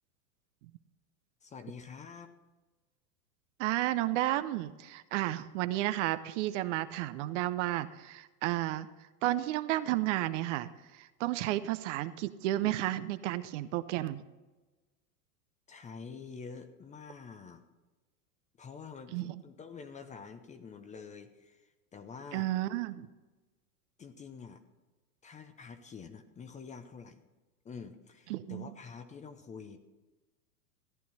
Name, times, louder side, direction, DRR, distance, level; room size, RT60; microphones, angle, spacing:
voice 1, 1.4-2.3 15.7-17.6 18.6-22.5 24.0-24.6 25.2-27.3 27.6-29.8, left 5 dB, 15° left, 9 dB, 0.7 m, -47 dB
voice 2, 3.6-8.9 9.2-10.7 11.0-14.2 19.1-19.4 22.3-23.1 28.3-28.7, right 15 dB, 50° right, 13 dB, 0.7 m, -32 dB
14.0 x 10.0 x 4.2 m, 1.2 s
hypercardioid pair, 110°, 47 cm